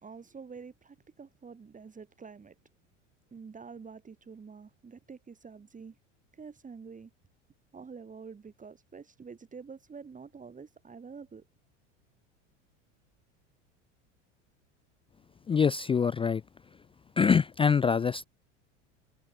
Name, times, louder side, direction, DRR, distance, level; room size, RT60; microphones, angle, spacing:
voice 1, 0.0-2.6 3.3-6.0 6.3-7.1 7.7-11.4, right 5 dB, 20° right, 3.7 m, -47 dB
voice 2, 15.5-16.4 17.2-18.3, left 6 dB, 15° left, 0.5 m, -24 dB
hypercardioid pair, 90°, 37 cm